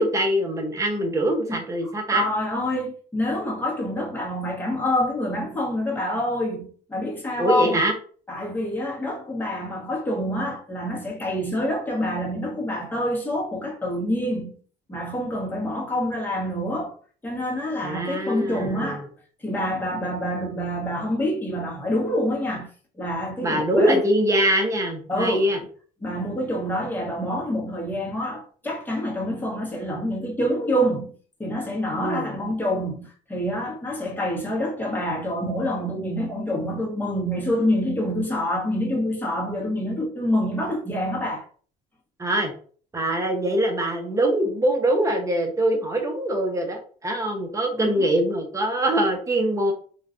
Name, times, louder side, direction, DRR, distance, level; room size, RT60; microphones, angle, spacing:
voice 1, 0.0-2.2 7.4-7.9 17.8-19.0 23.4-25.6 32.0-32.3 42.2-42.5 42.9-49.7, right 1 dB, 20° right, 0.7 m, -23 dB
voice 2, 1.5-7.8 8.3-14.6 14.9-17.0 17.2-19.1 19.4-22.7 23.0-24.0 25.1-25.5 26.0-31.1 31.4-41.5 47.8-48.0, left 1 dB, 10° left, 1.0 m, -27 dB
3.1 x 2.3 x 2.5 m
cardioid pair, 110°, 17 cm